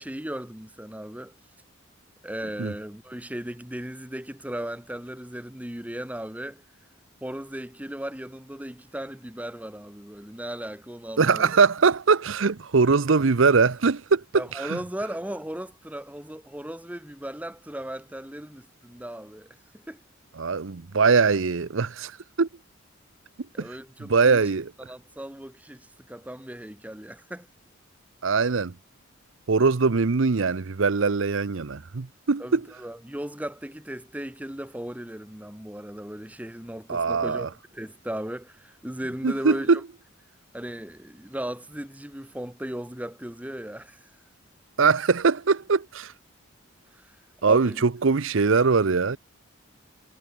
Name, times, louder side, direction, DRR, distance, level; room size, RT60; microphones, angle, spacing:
voice 1, 0.0-1.4 2.2-6.6 7.2-11.5 14.3-20.0 23.5-27.5 32.4-39.8 40.5-44.1 46.9-47.2 47.4-47.8, right 1 dB, 5° right, 1.1 m, -37 dB
voice 2, 11.2-14.8 20.4-22.1 22.4-22.5 23.6-23.7 24.0-24.7 28.2-28.7 29.5-32.6 36.9-37.5 39.2-39.8 44.8-46.1 47.4-49.2, right 4 dB, 70° right, 0.7 m, -22 dB
head